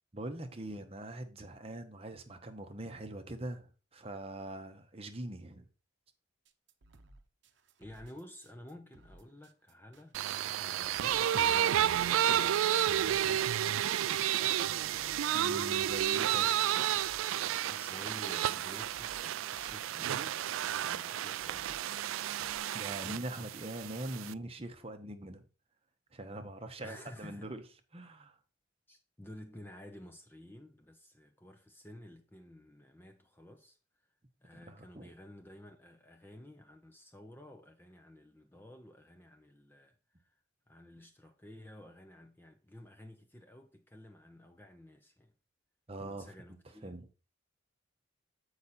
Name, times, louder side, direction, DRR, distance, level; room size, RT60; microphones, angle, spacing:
voice 1, 0.1-5.7 15.3-16.6 22.7-25.4 26.1-27.6 27.9-28.4 34.7-35.1 45.9-46.3 46.8-47.1, right 1 dB, 30° right, 0.8 m, -42 dB
sound 1, 6.5-22.6, right 2 dB, 60° right, 0.8 m, -60 dB
voice 2, 7.8-10.2 10.6-14.8 17.7-21.9 26.8-27.5 28.9-33.8 34.4-40.4 40.7-45.3 46.1-46.9, left 1 dB, 10° left, 0.6 m, -52 dB
sound 2, 10.1-24.3, right 11 dB, 80° right, 0.3 m, -31 dB
8.4 x 4.9 x 4.2 m
head